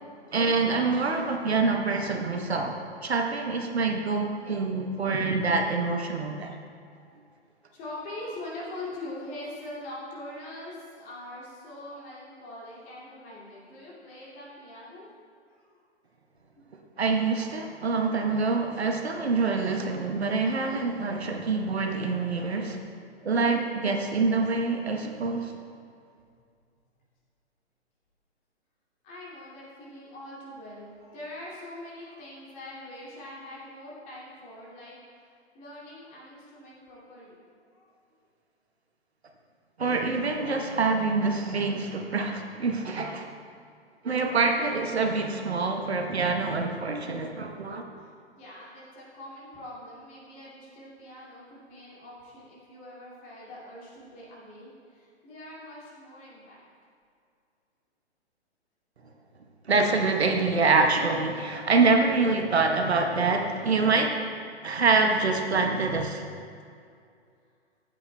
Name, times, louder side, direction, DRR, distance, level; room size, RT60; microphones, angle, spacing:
voice 1, 0.3-2.8 3.0-6.5 17.0-22.8 23.2-25.5 39.8-43.3 44.0-47.8 59.6-64.2 64.6-66.3, right 4 dB, 70° right, 3 dB, 1.0 m, -25 dB
voice 2, 7.7-15.1 15.5-15.7 23.2-23.3 25.1-25.6 29.0-37.4 37.7-38.0 48.0-56.6, left 1 dB, 20° left, -5 dB, 2.2 m, -43 dB
14.5 x 8.8 x 2.2 m, 2.3 s
figure-of-eight pair, 125°, 34 cm